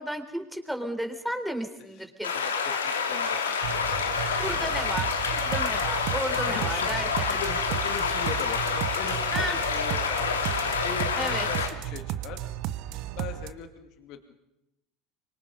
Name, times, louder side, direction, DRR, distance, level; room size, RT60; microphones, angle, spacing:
voice 1, 0.0-2.3 4.4-7.3 9.3-9.6 11.1-11.5, equal, ahead, 6 dB, 4.0 m, -33 dB
sound 1, 2.2-11.7, left 5 dB, 90° left, 2.4 m, -28 dB
voice 2, 2.3-4.7 6.5-7.0 7.3-12.4 13.2-14.3, left 8 dB, 60° left, 7 dB, 2.3 m, -40 dB
sound 2, 3.6-13.5, right 13 dB, 60° right, 1.2 m, -34 dB
26.0 x 24.0 x 5.4 m, 0.88 s
hypercardioid pair, 75°, 0 cm